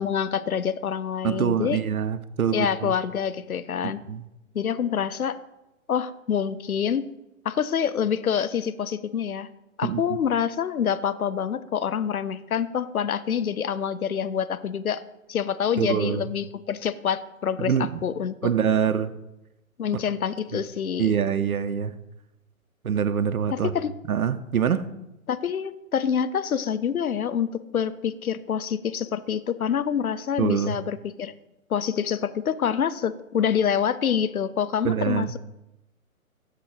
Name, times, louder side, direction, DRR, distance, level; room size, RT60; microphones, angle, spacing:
voice 1, 0.0-1.8 2.5-4.0 4.5-5.4 5.9-7.1 7.4-9.5 9.8-15.0 15.3-18.5 19.8-21.1 23.5-23.9 25.3-31.3 31.7-35.4, left 8 dB, 85° left, 0.5 m, -26 dB
voice 2, 1.2-2.9 3.8-4.2 9.8-10.0 15.8-16.2 17.6-18.0 18.4-19.1 20.5-20.6 21.0-21.9 22.8-23.7 24.1-24.9 30.4-30.8 34.8-35.3, right 8 dB, 85° right, 0.5 m, -25 dB
6.5 x 3.7 x 6.1 m
figure-of-eight pair, 120°, 42 cm